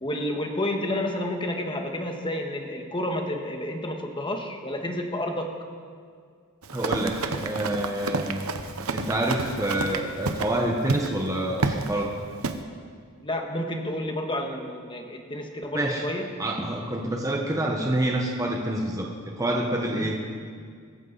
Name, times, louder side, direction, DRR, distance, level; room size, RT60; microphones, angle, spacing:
voice 1, 0.0-5.5 13.2-16.3 19.9-20.2, left 1 dB, 25° left, 3 dB, 1.6 m, -30 dB
Run, 6.6-10.5 10.9-11.1 11.6-11.9 12.4-12.6, right 3 dB, 75° right, 1.0 m, -29 dB
voice 2, 6.7-8.4 8.9-12.1 15.7-16.0 16.4-19.1 19.4-20.2, right 1 dB, 15° right, 0 dB, 1.3 m, -27 dB
25.0 x 14.0 x 4.1 m, 2.1 s
head